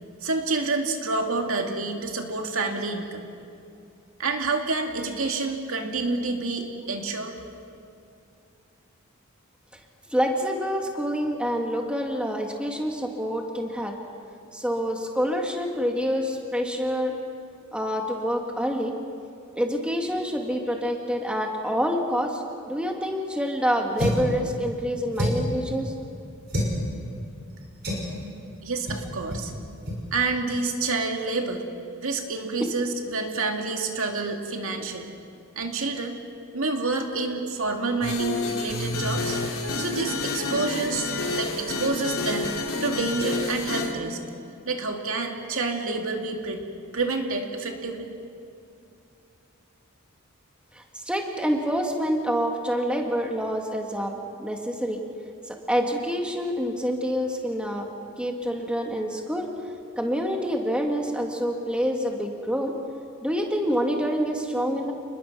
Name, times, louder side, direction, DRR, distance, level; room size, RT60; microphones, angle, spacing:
voice 1, 0.2-3.3 4.2-7.3 28.6-29.5 30.1-31.7 32.0-35.1 35.6-36.2 36.5-39.4 39.8-42.5 42.8-44.2 44.7-46.6 46.9-48.1, right 3 dB, 70° right, 3 dB, 2.4 m, -28 dB
voice 2, 10.1-13.9 14.5-17.2 17.7-18.9 19.5-25.9 50.7-55.0 55.5-57.9 58.2-59.5 60.0-62.7 63.2-64.9, equal, 5° right, 2 dB, 1.8 m, -27 dB
sound 1, 24.0-24.3 25.1-25.6 26.5-26.8 27.8-28.1 28.9-29.0 29.3-29.5 29.8-30.0, equal, 50° right, 5.8 m, -26 dB
sound 2, 38.0-43.9, left 3 dB, 80° left, 2.6 m, -29 dB
29.5 x 21.0 x 6.1 m, 2.5 s
head